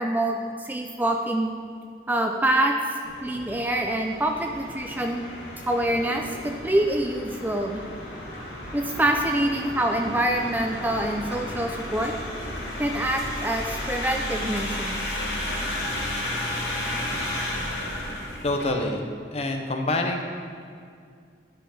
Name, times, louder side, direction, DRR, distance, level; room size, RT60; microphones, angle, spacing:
voice 1, 0.0-1.5 2.1-5.2 5.7-7.8 8.7-12.1 12.8-15.2, right 1 dB, 10° right, 3 dB, 0.4 m, -26 dB
sound 1, 3.0-18.7, left 1 dB, 75° left, 2.1 m, -33 dB
voice 2, 18.4-19.0 19.3-20.3, left 2 dB, 35° left, 4 dB, 0.7 m, -26 dB
10.0 x 5.7 x 4.2 m, 2.2 s
head